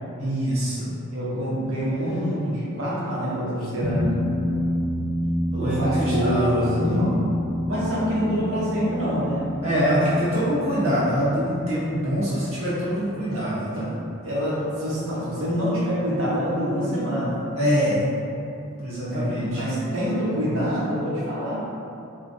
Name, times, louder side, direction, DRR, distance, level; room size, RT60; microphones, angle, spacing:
voice 1, 0.2-0.9 5.5-6.7 9.6-13.9 17.5-18.1 18.8-19.6, equal, 30° right, -11 dB, 0.9 m, -24 dB
voice 2, 1.1-4.3 5.6-7.3 7.7-9.5 13.3-13.8 14.2-17.5 19.1-21.5, equal, 80° right, -8 dB, 1.0 m, -26 dB
sound 1, 3.8-14.5, equal, 10° right, 0.4 m, -30 dB
4.3 x 2.4 x 2.6 m, 2.7 s
head